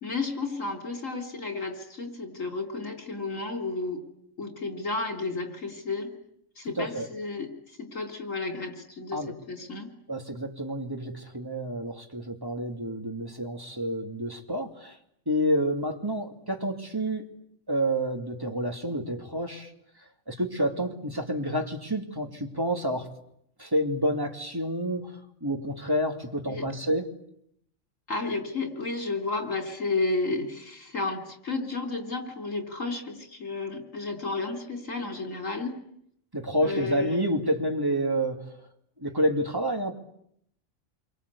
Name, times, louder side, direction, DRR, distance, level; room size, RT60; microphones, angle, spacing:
voice 1, 0.0-4.0 4.4-6.1 6.6-9.9 26.4-26.7 28.1-35.8 36.6-37.2, left 3 dB, 85° left, 4 dB, 3.8 m, -32 dB
voice 2, 6.8-7.1 9.1-9.3 10.1-15.0 15.3-17.2 17.7-19.7 20.3-23.1 23.6-27.1 36.3-38.5 39.0-39.9, equal, 15° right, 3 dB, 2.7 m, -29 dB
28.0 x 24.0 x 8.4 m, 0.74 s
omnidirectional pair, 1.3 m